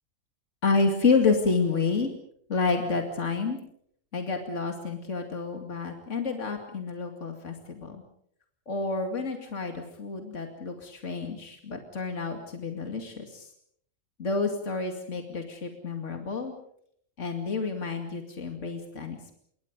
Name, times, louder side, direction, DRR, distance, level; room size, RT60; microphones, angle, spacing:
voice 1, 0.6-2.1 2.5-3.6 4.1-8.0 8.7-13.5 14.2-16.5 17.2-19.3, left 4 dB, 65° left, 4 dB, 2.8 m, -29 dB
27.0 x 23.5 x 5.3 m, 0.65 s
omnidirectional pair, 1.4 m